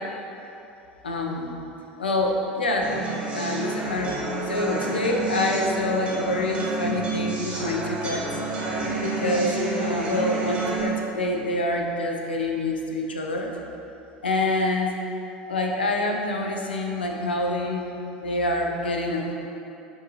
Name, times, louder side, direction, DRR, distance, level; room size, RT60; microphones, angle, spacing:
voice 1, 1.0-1.5 2.0-3.0 3.3-4.1 4.5-8.3 9.0-13.5 14.2-14.9 15.5-17.9 18.2-19.3, left 2 dB, 75° left, 1 dB, 0.5 m, -26 dB
sound 1, 2.8-10.8, right 2 dB, 20° right, 1.0 m, -29 dB
6.2 x 2.6 x 3.1 m, 2.9 s
figure-of-eight pair, 75°, 5 cm